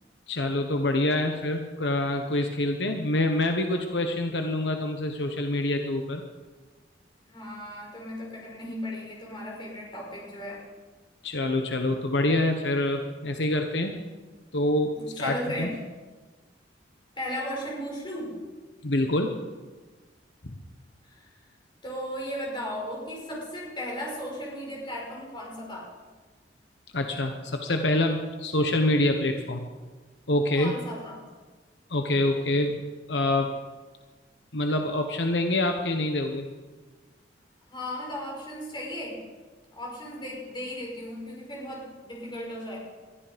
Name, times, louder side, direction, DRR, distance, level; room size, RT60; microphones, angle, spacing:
voice 1, 0.3-6.2 11.2-14.0 14.5-15.7 18.8-19.4 26.9-29.6 30.3-30.8 31.9-32.8 33.1-33.5 34.5-36.5, left 1 dB, 75° left, 5 dB, 1.2 m, -26 dB
voice 2, 7.3-10.6 15.0-15.8 17.2-18.4 21.0-21.3 21.8-25.9 30.5-31.3 37.7-39.2 39.7-42.8, equal, 25° left, -3 dB, 5.7 m, -36 dB
21.5 x 13.0 x 5.2 m, 1.3 s
head